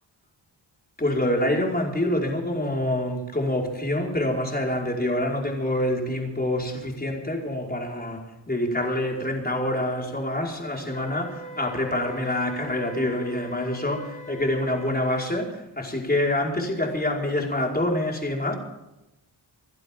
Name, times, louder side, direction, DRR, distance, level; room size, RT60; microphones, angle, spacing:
voice 1, 1.0-18.6, left 1 dB, 20° left, 5.1 m, -26 dB
Wind instrument woodwind instrument, 10.9-15.5, left 1 dB, 45° left, 4.8 m, -42 dB
28.5 x 12.0 x 3.8 m
cardioid pair, 70°, 46 cm